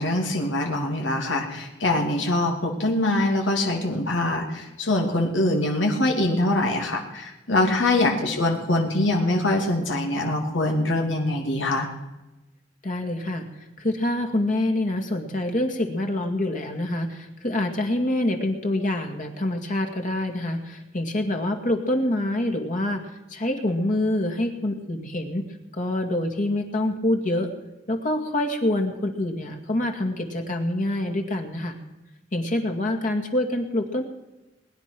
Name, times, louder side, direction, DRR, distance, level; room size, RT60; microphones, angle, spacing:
voice 1, 0.0-11.9, left 1 dB, 85° left, 1 dB, 2.8 m, -23 dB
voice 2, 12.8-13.5 13.8-23.0 23.3-25.5 25.8-27.5 27.9-31.7 32.3-34.0, left 1 dB, 45° left, 4 dB, 2.2 m, -26 dB
21.0 x 10.5 x 6.1 m, 1.0 s
head